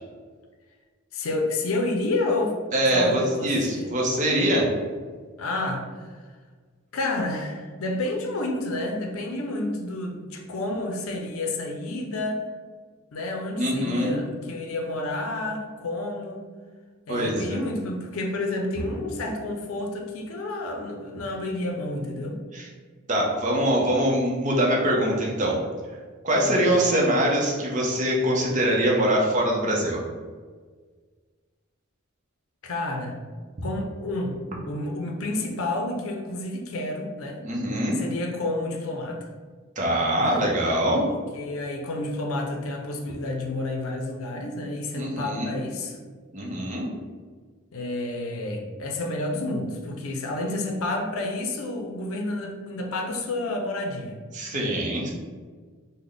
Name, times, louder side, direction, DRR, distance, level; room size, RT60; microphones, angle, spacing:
voice 1, 1.1-2.6 2.9-3.9 5.4-6.2 6.9-12.4 13.1-16.5 17.1-22.4 26.4-26.6 32.6-33.2 33.6-34.4 34.6-37.4 38.0-39.3 40.2-40.5 41.3-46.0 47.7-54.2, left 2 dB, 80° left, 2 dB, 0.5 m, -30 dB
voice 2, 2.7-4.7 13.6-14.2 17.1-17.6 22.5-22.7 23.1-25.6 26.2-30.0 37.4-38.0 39.8-41.1 45.0-45.5 46.3-46.9 54.3-55.1, right 1 dB, 35° right, -2 dB, 0.7 m, -23 dB
3.3 x 2.1 x 3.8 m, 1.5 s
head